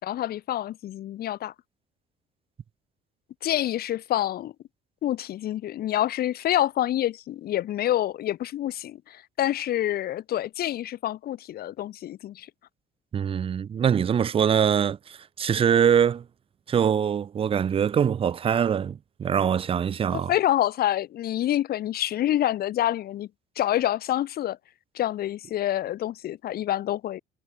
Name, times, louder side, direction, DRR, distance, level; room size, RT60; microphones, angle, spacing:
voice 1, 0.0-1.5 3.4-4.5 5.0-12.5 20.1-23.3 23.5-24.6 24.9-27.2, left 12 dB, 65° left, 3.5 m, -27 dB
voice 2, 13.1-15.0 15.4-16.2 16.7-20.3, right 8 dB, 35° right, 0.6 m, -23 dB
cardioid pair, 110°, 17 cm